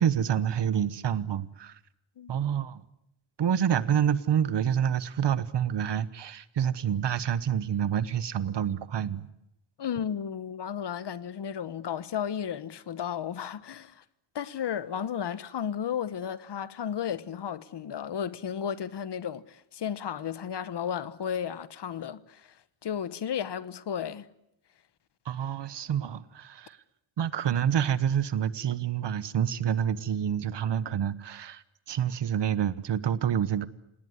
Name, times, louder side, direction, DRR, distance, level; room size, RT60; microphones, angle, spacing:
voice 1, 0.0-1.8 2.3-2.8 3.4-9.3 25.2-26.8 27.2-33.7, right 9 dB, 60° right, 1.2 m, -28 dB
voice 2, 9.8-14.0 14.3-22.5 22.8-24.3, left 8 dB, 55° left, 1.2 m, -33 dB
27.5 x 19.0 x 9.7 m
wide cardioid pair, 140°, 48 cm